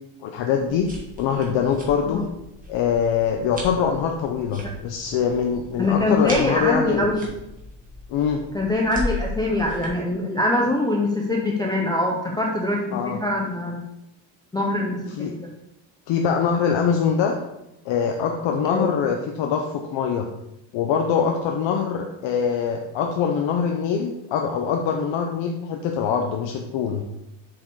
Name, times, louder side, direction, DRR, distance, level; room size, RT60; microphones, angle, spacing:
voice 1, 0.2-0.9 1.2-2.2 2.7-7.2 8.1-8.4 12.9-13.2 15.2-15.3 16.1-17.4 17.8-20.3 20.7-27.1, left 7 dB, 70° left, 3 dB, 0.8 m, -23 dB
sound 1, 0.5-9.9, left 1 dB, 15° right, 1.6 m, -37 dB
voice 2, 5.8-7.2 8.5-13.8 14.5-15.3 18.7-18.9, left 2 dB, 10° left, -2 dB, 0.5 m, -23 dB
7.4 x 4.6 x 4.7 m, 0.90 s
cardioid pair, 170°, 47 cm